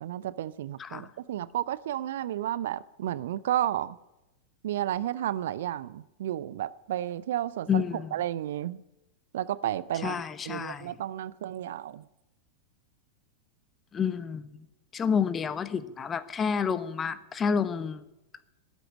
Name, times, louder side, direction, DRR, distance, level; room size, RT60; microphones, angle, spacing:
voice 1, 0.0-4.0 4.6-8.8 9.3-10.2 10.5-12.1, right 12 dB, 60° right, 19 dB, 0.5 m, -32 dB
voice 2, 7.7-8.1 10.0-10.9 13.9-14.4 14.9-18.0, left 6 dB, 20° left, 15 dB, 0.9 m, -29 dB
13.0 x 9.3 x 9.6 m, 0.94 s
figure-of-eight pair, 90°, 0 cm